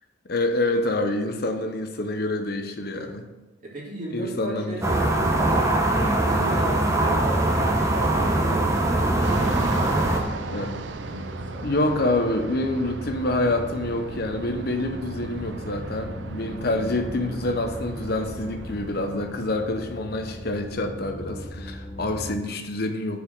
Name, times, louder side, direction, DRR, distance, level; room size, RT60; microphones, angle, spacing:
voice 1, 0.3-3.3 4.1-5.1 8.6-8.7 10.5-10.7 11.6-23.2, left 2 dB, 60° left, 6 dB, 0.8 m, -27 dB
voice 2, 3.6-5.6 6.0-11.7, right 1 dB, 50° right, -4 dB, 2.5 m, -37 dB
sound 1, 4.8-10.2, right 2 dB, 15° right, 1.0 m, -22 dB
sound 2, 7.4-22.3, equal, 30° left, 1.1 m, -39 dB
Fixed-wing aircraft airplane, 9.2-20.1, right 4 dB, 85° right, 0.6 m, -38 dB
7.0 x 4.8 x 6.5 m, 1.1 s
head